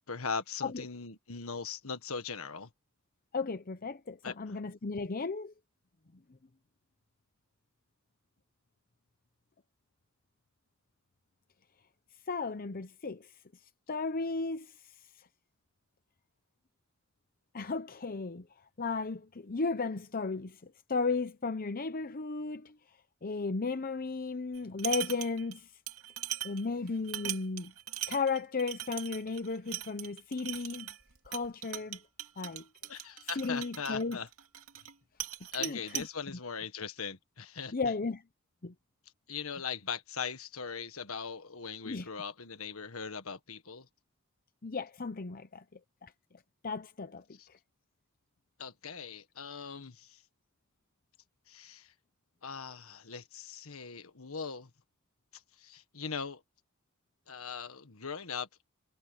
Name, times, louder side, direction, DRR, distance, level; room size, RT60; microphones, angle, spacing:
voice 1, 0.1-2.7 4.2-4.6 32.9-34.3 35.5-37.9 39.3-43.9 47.4-47.5 48.6-50.2 51.5-51.9 52.4-54.7 55.6-56.4 57.3-58.5, left 5 dB, 75° left, 1.6 m, -40 dB
voice 2, 3.3-5.5 12.3-13.3 13.9-14.7 17.5-18.5 18.8-22.7 23.2-25.7 26.4-27.7 28.1-30.9 31.3-32.0 32.4-32.7 33.4-34.2 35.6-36.0 37.7-38.2 38.6-38.7 41.8-42.1 44.6-46.1 46.6-47.2, left 4 dB, 45° left, 0.8 m, -35 dB
sound 1, 24.5-25.6 25.9-34.9 35.2-36.1, right 12 dB, 75° right, 2.5 m, -40 dB
head